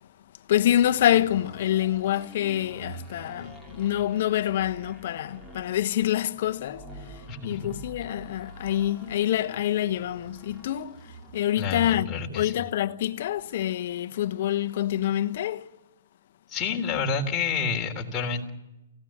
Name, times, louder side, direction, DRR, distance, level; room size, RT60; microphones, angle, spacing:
voice 1, 0.5-7.2 7.4-15.7, left 12 dB, 50° left, 1.2 m, -26 dB
sound 1, 0.8-11.6, right 1 dB, 10° right, 3.7 m, -46 dB
voice 2, 7.3-8.1 11.6-12.5 16.5-18.5, left 5 dB, 20° left, 3.5 m, -29 dB
29.0 x 16.5 x 7.5 m
hypercardioid pair, 150°, 0 cm